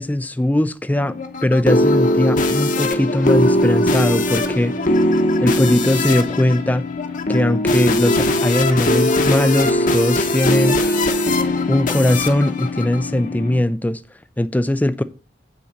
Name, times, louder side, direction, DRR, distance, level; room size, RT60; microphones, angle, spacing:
voice 1, 0.0-4.8 5.4-6.9 7.3-10.8 11.7-14.0 14.4-15.0, left 1 dB, 10° left, 0.4 m, -19 dB
sound 1, 0.9-13.6, left 1 dB, 45° left, 1.0 m, -20 dB
8.6 x 3.9 x 6.5 m
head